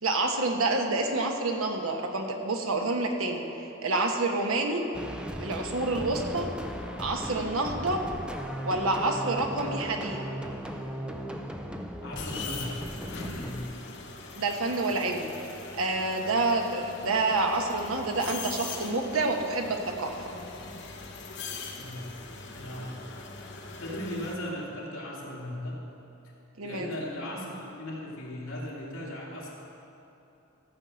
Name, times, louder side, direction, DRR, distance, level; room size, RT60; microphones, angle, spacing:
voice 1, 0.0-3.4 3.8-4.8 5.4-6.5 7.0-8.0 8.6-10.2 14.4-15.3 15.7-20.1 26.6-26.9, right 2 dB, 80° right, 3 dB, 1.2 m, -28 dB
sound 1, 4.9-13.7, equal, 5° right, 0.5 m, -37 dB
voice 2, 12.0-13.7 21.7-22.3 22.5-23.0 23.5-25.9 26.6-29.6, left 1 dB, 70° left, -5 dB, 2.6 m, -38 dB
sound 2, 12.2-24.3, left 4 dB, 55° left, 1.0 m, -41 dB
14.5 x 5.4 x 7.6 m, 3.0 s
head